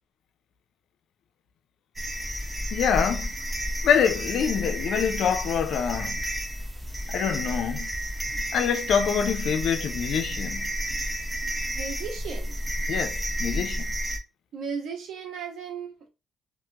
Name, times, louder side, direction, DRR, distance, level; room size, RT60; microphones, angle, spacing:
sound 1, 2.0-14.2, equal, 15° right, 0.7 m, -31 dB
voice 1, 2.7-3.3 3.8-6.2 7.1-7.9 8.5-10.7 12.9-13.9, left 8 dB, 75° left, 0.4 m, -25 dB
voice 2, 11.6-12.6 14.5-16.1, right 6 dB, 75° right, 1.0 m, -36 dB
2.7 x 2.5 x 2.7 m
cardioid pair, 90°, 0 cm